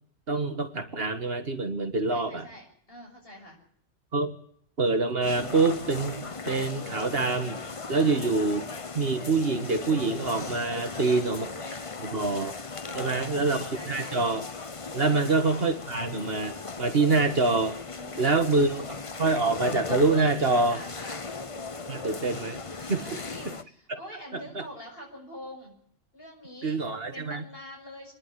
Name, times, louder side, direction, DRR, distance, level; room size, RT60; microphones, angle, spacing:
voice 1, 0.3-2.5 4.1-4.4 4.8-6.2 6.5-7.6 7.9-8.6 9.0-11.5 12.0-12.6 12.9-14.4 14.9-17.8 18.2-18.8 19.2-20.8 21.9-23.2 24.6-24.7 26.6-27.4, right 3 dB, 55° right, 8 dB, 1.9 m, -26 dB
voice 2, 2.1-3.6 7.9-8.2 10.7-11.5 12.8-13.5 13.7-14.2 15.0-15.3 17.9-19.0 20.7-21.3 22.9-25.8 26.1-26.8 27.1-28.1, equal, 55° left, 1 dB, 6.9 m, -45 dB
sound 1, 5.2-23.6, left 4 dB, 30° left, 0.9 m, -38 dB
26.5 x 11.0 x 9.8 m, 0.65 s
omnidirectional pair, 1.2 m